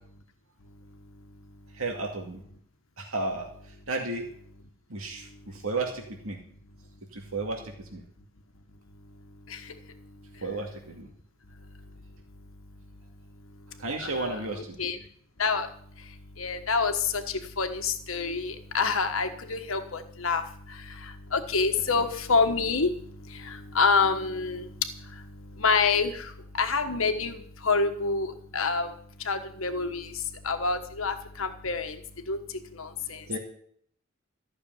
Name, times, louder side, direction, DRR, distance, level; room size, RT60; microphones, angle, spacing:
voice 1, 0.6-1.8 5.1-5.6 7.2-7.3 8.7-10.5 11.4-15.1 15.4-33.4, left 4 dB, 75° left, 7 dB, 1.3 m, -29 dB
voice 2, 1.7-2.4 3.0-4.3 4.9-6.4 7.1-8.0 10.4-11.1 13.8-14.8 33.3-33.4, right 3 dB, 85° right, 1 dB, 2.3 m, -33 dB
14.5 x 6.7 x 9.5 m, 0.62 s
head